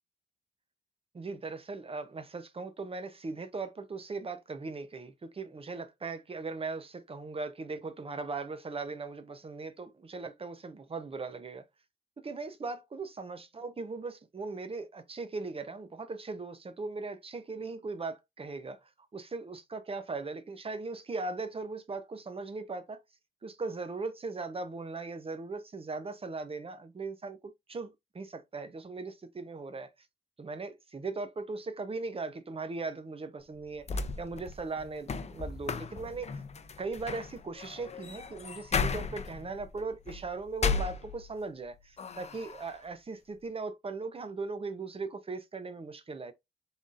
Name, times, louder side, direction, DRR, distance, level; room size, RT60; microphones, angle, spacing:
voice 1, 1.1-11.6 12.2-18.8 19.1-23.0 23.4-29.9 30.4-36.4 36.8-46.3, right 3 dB, 30° right, 0.6 m, -39 dB
sound 1, 33.6-41.6 42.0-42.8, left 5 dB, 35° left, 0.5 m, -35 dB
3.9 x 3.5 x 2.5 m
wide cardioid pair, 110°, 19 cm